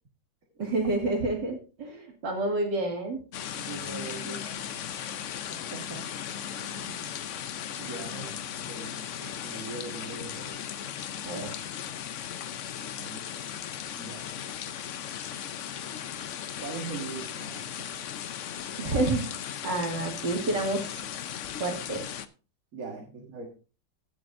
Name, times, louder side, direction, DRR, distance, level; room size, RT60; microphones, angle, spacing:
voice 1, 0.6-3.2 11.2-11.5 18.8-19.3 19.6-20.8 21.6-22.1, right 2 dB, 70° right, 2 dB, 3.1 m, -29 dB
sound 1, 3.3-22.3, left 9 dB, 65° left, 0.7 m, -37 dB
voice 2, 3.6-4.5 5.5-6.1 6.5-7.2 7.8-10.6 11.3-11.6 13.0-13.2 13.5-13.6 14.0-14.4 16.6-18.1 22.7-23.5, right 4 dB, 45° right, 0 dB, 2.1 m, -41 dB
17.0 x 7.7 x 2.6 m, 0.33 s
omnidirectional pair, 2.0 m